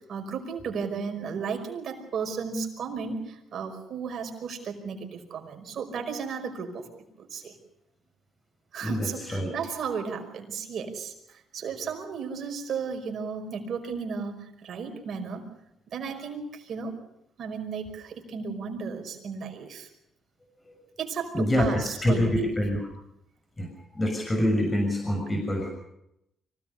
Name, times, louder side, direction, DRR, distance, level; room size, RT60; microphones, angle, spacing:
voice 1, 0.0-6.9 7.2-7.6 8.7-15.5 15.9-17.0 17.4-19.9 21.0-22.5, right 5 dB, 60° right, 4 dB, 5.3 m, -34 dB
voice 2, 8.8-9.5 20.6-20.7 21.3-22.9 23.6-25.7, left 1 dB, 20° left, 2 dB, 6.6 m, -26 dB
25.0 x 18.0 x 6.9 m, 0.81 s
cardioid pair, 90°, 0 cm